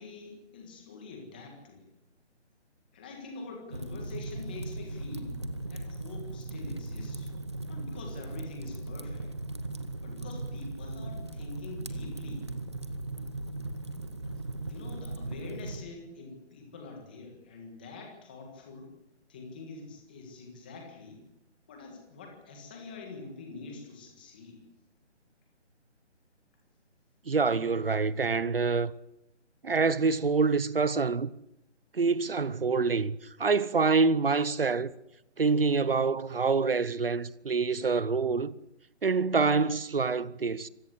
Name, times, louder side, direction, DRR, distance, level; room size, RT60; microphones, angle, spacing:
voice 1, 0.0-1.8 2.9-5.4 5.7-7.3 7.7-9.3 10.0-12.5 14.5-18.9 19.3-21.2 21.7-24.6, left 3 dB, 10° left, 1.6 m, -45 dB
Fire, 3.7-15.8, right 2 dB, 25° right, 0.9 m, -38 dB
voice 2, 27.3-28.9 29.6-31.3 31.9-34.9 35.4-38.5 39.0-40.7, right 4 dB, 50° right, 1.0 m, -26 dB
26.0 x 16.0 x 8.1 m
hypercardioid pair, 175°, 35 cm